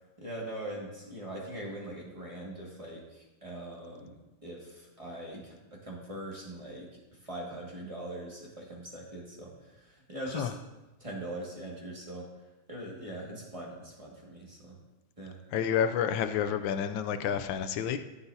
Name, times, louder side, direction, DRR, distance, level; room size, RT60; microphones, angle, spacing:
voice 1, 0.2-10.5 11.0-12.3 12.7-14.8 15.2-15.4, right 1 dB, 15° right, -3 dB, 1.8 m, -42 dB
voice 2, 15.5-18.0, left 8 dB, 85° left, 9 dB, 1.3 m, -29 dB
13.5 x 7.0 x 2.7 m, 1.1 s
omnidirectional pair, 2.1 m